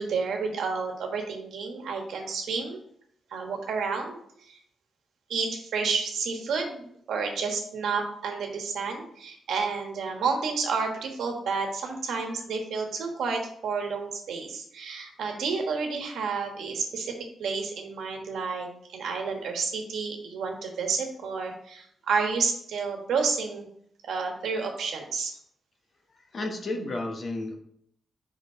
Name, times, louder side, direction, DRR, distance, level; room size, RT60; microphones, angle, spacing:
voice 1, 0.0-2.8 3.3-4.2 4.5-4.6 5.3-17.1 17.4-18.7 18.9-23.7 24.0-25.3, right 5 dB, 85° right, 3 dB, 1.4 m, -30 dB
voice 2, 26.3-27.6, left 2 dB, 45° left, 3 dB, 1.2 m, -32 dB
5.1 x 5.0 x 4.9 m, 0.68 s
cardioid pair, 115°, 0 cm